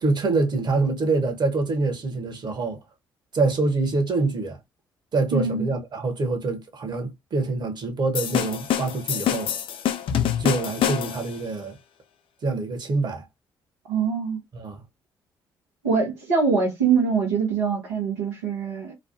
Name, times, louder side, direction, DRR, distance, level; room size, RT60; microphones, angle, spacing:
voice 1, 0.0-2.8 3.3-4.6 5.1-9.5 10.4-11.7 12.4-13.2 14.5-14.8, right 3 dB, 50° right, 1.2 m, -25 dB
voice 2, 5.3-5.7 13.9-14.4 15.8-18.9, right 5 dB, 90° right, 1.0 m, -23 dB
sound 1, 8.1-11.4, left 10 dB, 60° left, 0.5 m, -26 dB
3.1 x 2.2 x 2.6 m
hypercardioid pair, 50°, 10 cm